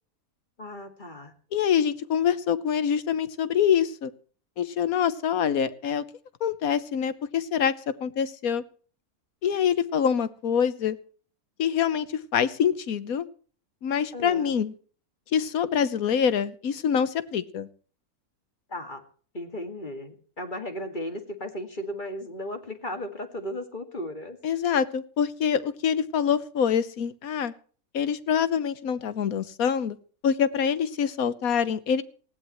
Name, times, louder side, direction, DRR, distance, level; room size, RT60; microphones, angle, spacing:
voice 1, 0.6-1.3 14.1-14.6 18.7-19.0 19.3-24.4, left 1 dB, 35° left, 7 dB, 2.2 m, -35 dB
voice 2, 1.5-4.1 4.6-6.0 6.4-7.7 8.0-8.6 9.4-11.0 11.6-13.2 13.8-14.7 15.3-17.7 24.4-27.5 27.9-30.0 30.2-32.0, left 8 dB, 70° left, 14 dB, 1.5 m, -25 dB
19.0 x 16.0 x 3.1 m, 0.42 s
omnidirectional pair, 1.5 m